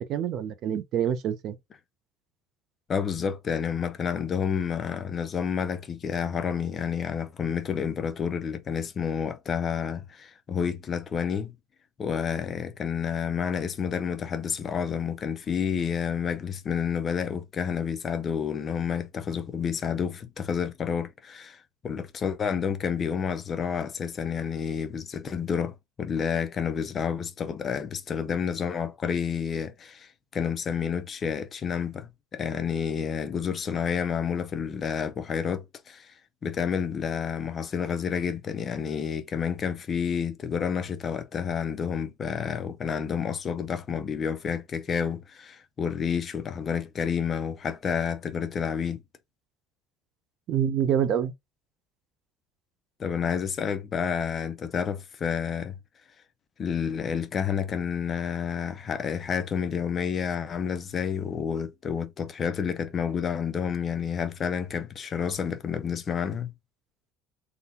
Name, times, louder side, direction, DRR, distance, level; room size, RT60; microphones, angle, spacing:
voice 1, 0.0-1.6 50.5-51.3, right 9 dB, 40° right, 0.4 m, -26 dB
voice 2, 2.9-11.5 12.0-36.1 36.4-49.0 53.0-55.8 56.6-66.5, left 7 dB, 25° left, 0.4 m, -30 dB
3.7 x 2.1 x 2.7 m
cardioid pair, 165°, 0 cm